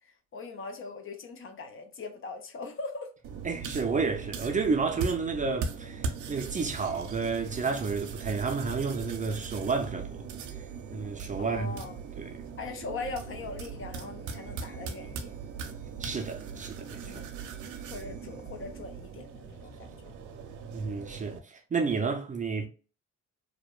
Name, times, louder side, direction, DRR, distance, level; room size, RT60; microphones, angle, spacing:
voice 1, 0.3-3.1 11.4-12.0 12.6-15.3 17.0-17.3 17.9-20.1, left 3 dB, 45° left, 0.5 m, -40 dB
sound 1, 3.2-21.4, right 5 dB, 80° right, 0.5 m, -39 dB
voice 2, 3.4-10.3 10.9-11.8 12.2-12.4 16.0-17.2 20.7-22.7, right 4 dB, 25° right, 0.4 m, -31 dB
2.7 x 2.1 x 2.2 m
cardioid pair, 90°, 30 cm